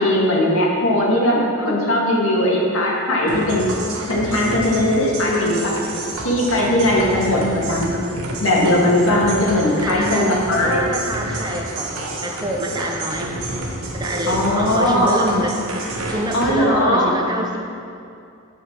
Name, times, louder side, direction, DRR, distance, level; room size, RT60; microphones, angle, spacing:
voice 1, 0.0-3.7 4.1-5.8 6.2-8.0 8.4-10.9 14.3-15.2 16.3-17.1, left 1 dB, 65° left, -3 dB, 2.0 m, -19 dB
sound 1, 3.3-16.5, right 2 dB, 80° right, 1.3 m, -30 dB
voice 2, 9.8-13.3 13.9-15.6 16.1-17.6, right 1 dB, 20° right, 1 dB, 0.7 m, -26 dB
9.0 x 5.9 x 6.0 m, 2.5 s
head